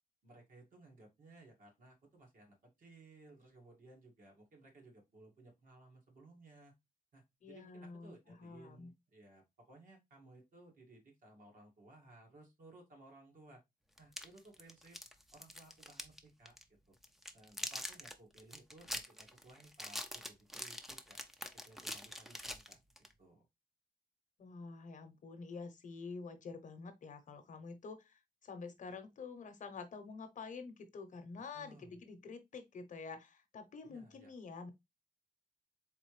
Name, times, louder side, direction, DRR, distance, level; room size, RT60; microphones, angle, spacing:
voice 1, 0.2-6.7 7.1-13.6 14.0-15.0 15.3-16.5 16.9-17.0 17.3-21.2 21.6-23.5 31.5-32.0 33.8-34.3, right 2 dB, 60° right, 2.0 m, -60 dB
voice 2, 7.4-8.9 24.4-34.7, left 4 dB, 55° left, 0.8 m, -48 dB
sound 1, 14.0-16.2 16.5-16.6 17.0-23.1, equal, ahead, 0.5 m, -44 dB
4.0 x 3.7 x 3.1 m
wide cardioid pair, 135°, 15 cm